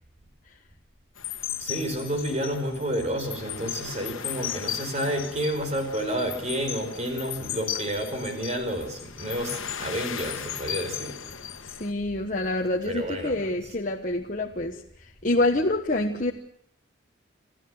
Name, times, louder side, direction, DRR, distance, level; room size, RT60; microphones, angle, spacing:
sound 1, 1.2-11.9, left 10 dB, 90° left, 1.4 m, -36 dB
voice 1, 1.6-11.1 12.9-13.3, equal, 35° right, 6 dB, 5.0 m, -30 dB
voice 2, 11.6-16.3, left 2 dB, 40° left, 2 dB, 1.2 m, -27 dB
27.0 x 14.0 x 7.9 m, 0.68 s
head